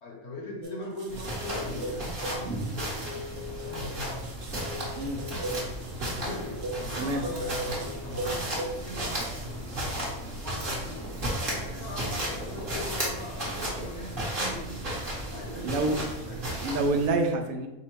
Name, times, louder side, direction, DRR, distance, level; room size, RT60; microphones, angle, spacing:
voice 1, 0.0-3.0 3.6-4.2 6.1-11.1 11.4-14.9 15.3-16.5, left 1 dB, 55° left, 0 dB, 1.0 m, -41 dB
sound 1, 0.6-8.8, right 1 dB, 55° right, 1.0 m, -38 dB
sound 2, 1.1-17.1, right 1 dB, 40° right, 1.4 m, -34 dB
sound 3, 3.8-11.3, left 3 dB, 35° left, 0.5 m, -50 dB
voice 2, 15.6-16.0 16.6-17.7, right 2 dB, 80° right, 4 dB, 1.1 m, -27 dB
5.2 x 2.2 x 4.4 m, 1.0 s
omnidirectional pair, 1.5 m